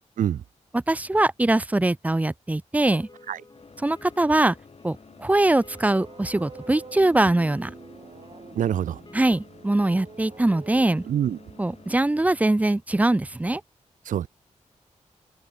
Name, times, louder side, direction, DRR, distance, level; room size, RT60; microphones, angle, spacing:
voice 1, 0.7-3.1 3.8-4.6 4.8-7.7 9.1-11.0 11.6-13.6, right 2 dB, 10° right, 0.4 m, -22 dB
sound 1, 2.8-9.5, left 3 dB, 30° left, 5.7 m, -52 dB
sound 2, 3.5-11.9, left 5 dB, 50° left, 2.0 m, -52 dB
sound 3, 5.1-12.8, right 5 dB, 50° right, 1.4 m, -47 dB
voice 2, 8.6-9.0 11.1-11.4 14.1-14.3, right 10 dB, 80° right, 0.4 m, -25 dB
cardioid pair, 70°, 13 cm